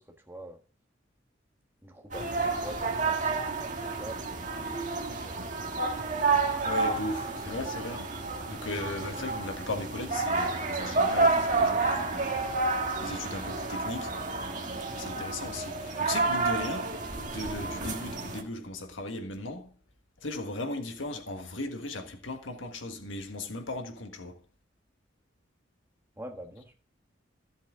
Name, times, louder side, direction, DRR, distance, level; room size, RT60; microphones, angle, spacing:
voice 1, 0.2-0.6 1.8-5.7 26.2-26.8, right 1 dB, 10° right, 1.5 m, -45 dB
sound 1, 2.1-18.4, right 3 dB, 40° right, 1.7 m, -30 dB
voice 2, 6.6-8.2 8.5-12.3 13.0-14.1 14.9-16.9 17.2-19.7 20.2-24.4, left 2 dB, 80° left, 1.6 m, -37 dB
14.5 x 7.5 x 3.8 m
head